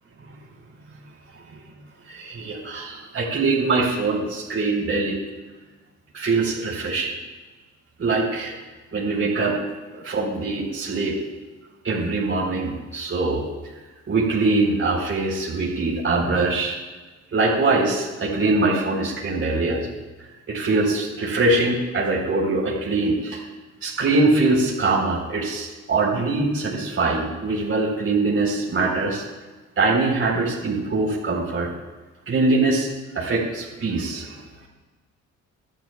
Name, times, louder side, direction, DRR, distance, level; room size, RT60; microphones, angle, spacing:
voice 1, 2.1-5.2 6.1-7.1 8.0-8.6 8.9-9.6 9.9-11.2 11.8-13.4 14.1-16.8 17.3-19.9 20.5-23.4 23.8-29.2 29.8-31.7 32.3-32.9 33.1-34.4, right 3 dB, 45° right, -3 dB, 4.3 m, -23 dB
26.0 x 12.0 x 2.4 m, 1.2 s
cardioid pair, 90°, 30 cm